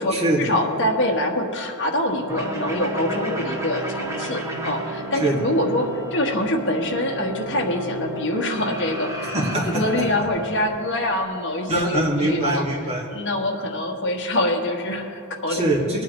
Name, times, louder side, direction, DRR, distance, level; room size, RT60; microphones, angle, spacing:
voice 1, 0.0-9.3 9.6-12.6 13.1-15.6, left 1 dB, 60° left, 0 dB, 1.4 m, -25 dB
sound 1, 2.3-11.2, right 1 dB, 15° right, 1.3 m, -32 dB
voice 2, 9.3-9.7 11.7-13.0 15.5-16.0, right 1 dB, 30° right, -3 dB, 2.2 m, -22 dB
20.0 x 9.3 x 3.2 m, 2.7 s
head